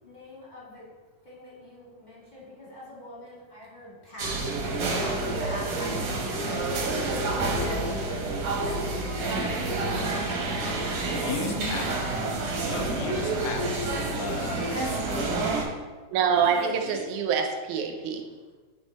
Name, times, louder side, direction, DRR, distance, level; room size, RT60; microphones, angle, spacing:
voice 1, 0.0-0.9 1.2-4.6 4.9-9.1 9.8-10.1 11.0-11.4 14.3-15.5 15.9-16.0 16.3-17.0 18.2-18.6, left 2 dB, 20° left, -8 dB, 1.2 m, -41 dB
sound 1, 4.2-15.6, right 2 dB, 65° right, 2.0 m, -28 dB
voice 2, 10.8-11.9 12.7-13.7 14.2-14.9 16.3-17.1, left 6 dB, 85° left, 5 dB, 2.2 m, -38 dB
voice 3, 16.1-18.2, right 7 dB, 80° right, 4 dB, 2.0 m, -25 dB
8.2 x 3.6 x 4.1 m, 1.4 s
omnidirectional pair, 3.5 m